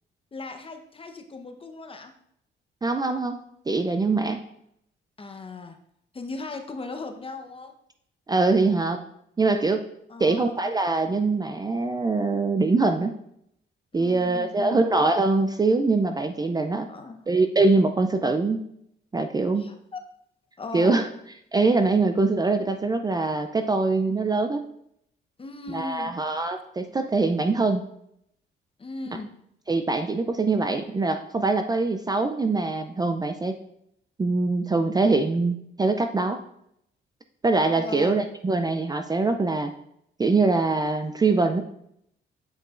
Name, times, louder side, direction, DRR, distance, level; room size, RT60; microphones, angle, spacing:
voice 1, 0.3-2.1 5.2-5.8 6.1-7.7 10.1-10.6 13.9-14.9 16.9-17.2 19.6-20.0 20.6-20.9 25.4-26.1 28.8-29.3 37.8-38.2, left 3 dB, 25° left, 5 dB, 0.8 m, -37 dB
voice 2, 2.8-3.4 3.7-4.4 8.3-9.0 9.4-9.8 10.2-13.1 13.9-16.9 17.3-18.6 19.1-19.7 20.7-21.1 21.5-24.7 25.7-27.8 29.7-33.6 34.2-36.4 37.4-39.7 40.2-41.6, right 3 dB, 20° right, 7 dB, 0.4 m, -23 dB
8.3 x 5.4 x 2.5 m, 0.73 s
cardioid pair, 90°, 20 cm